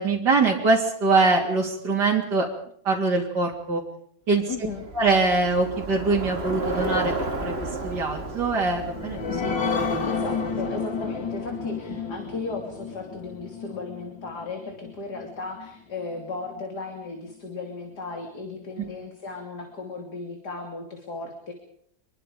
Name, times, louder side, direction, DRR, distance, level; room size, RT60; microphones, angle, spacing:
voice 1, 0.0-2.5 2.8-3.8 4.3-4.4 4.9-7.1 7.4-7.5 7.8-10.1, right 3 dB, 65° right, -2 dB, 3.9 m, -23 dB
voice 2, 4.5-4.8 10.1-21.5, left 3 dB, 60° left, 3 dB, 3.7 m, -36 dB
Bicycle, 4.5-11.0, right 2 dB, 35° right, 2.4 m, -33 dB
sound 1, 8.6-15.7 16.1-16.2 16.6-16.7, left 4 dB, 85° left, 2.8 m, -31 dB
26.0 x 23.0 x 5.2 m, 0.66 s
omnidirectional pair, 1.9 m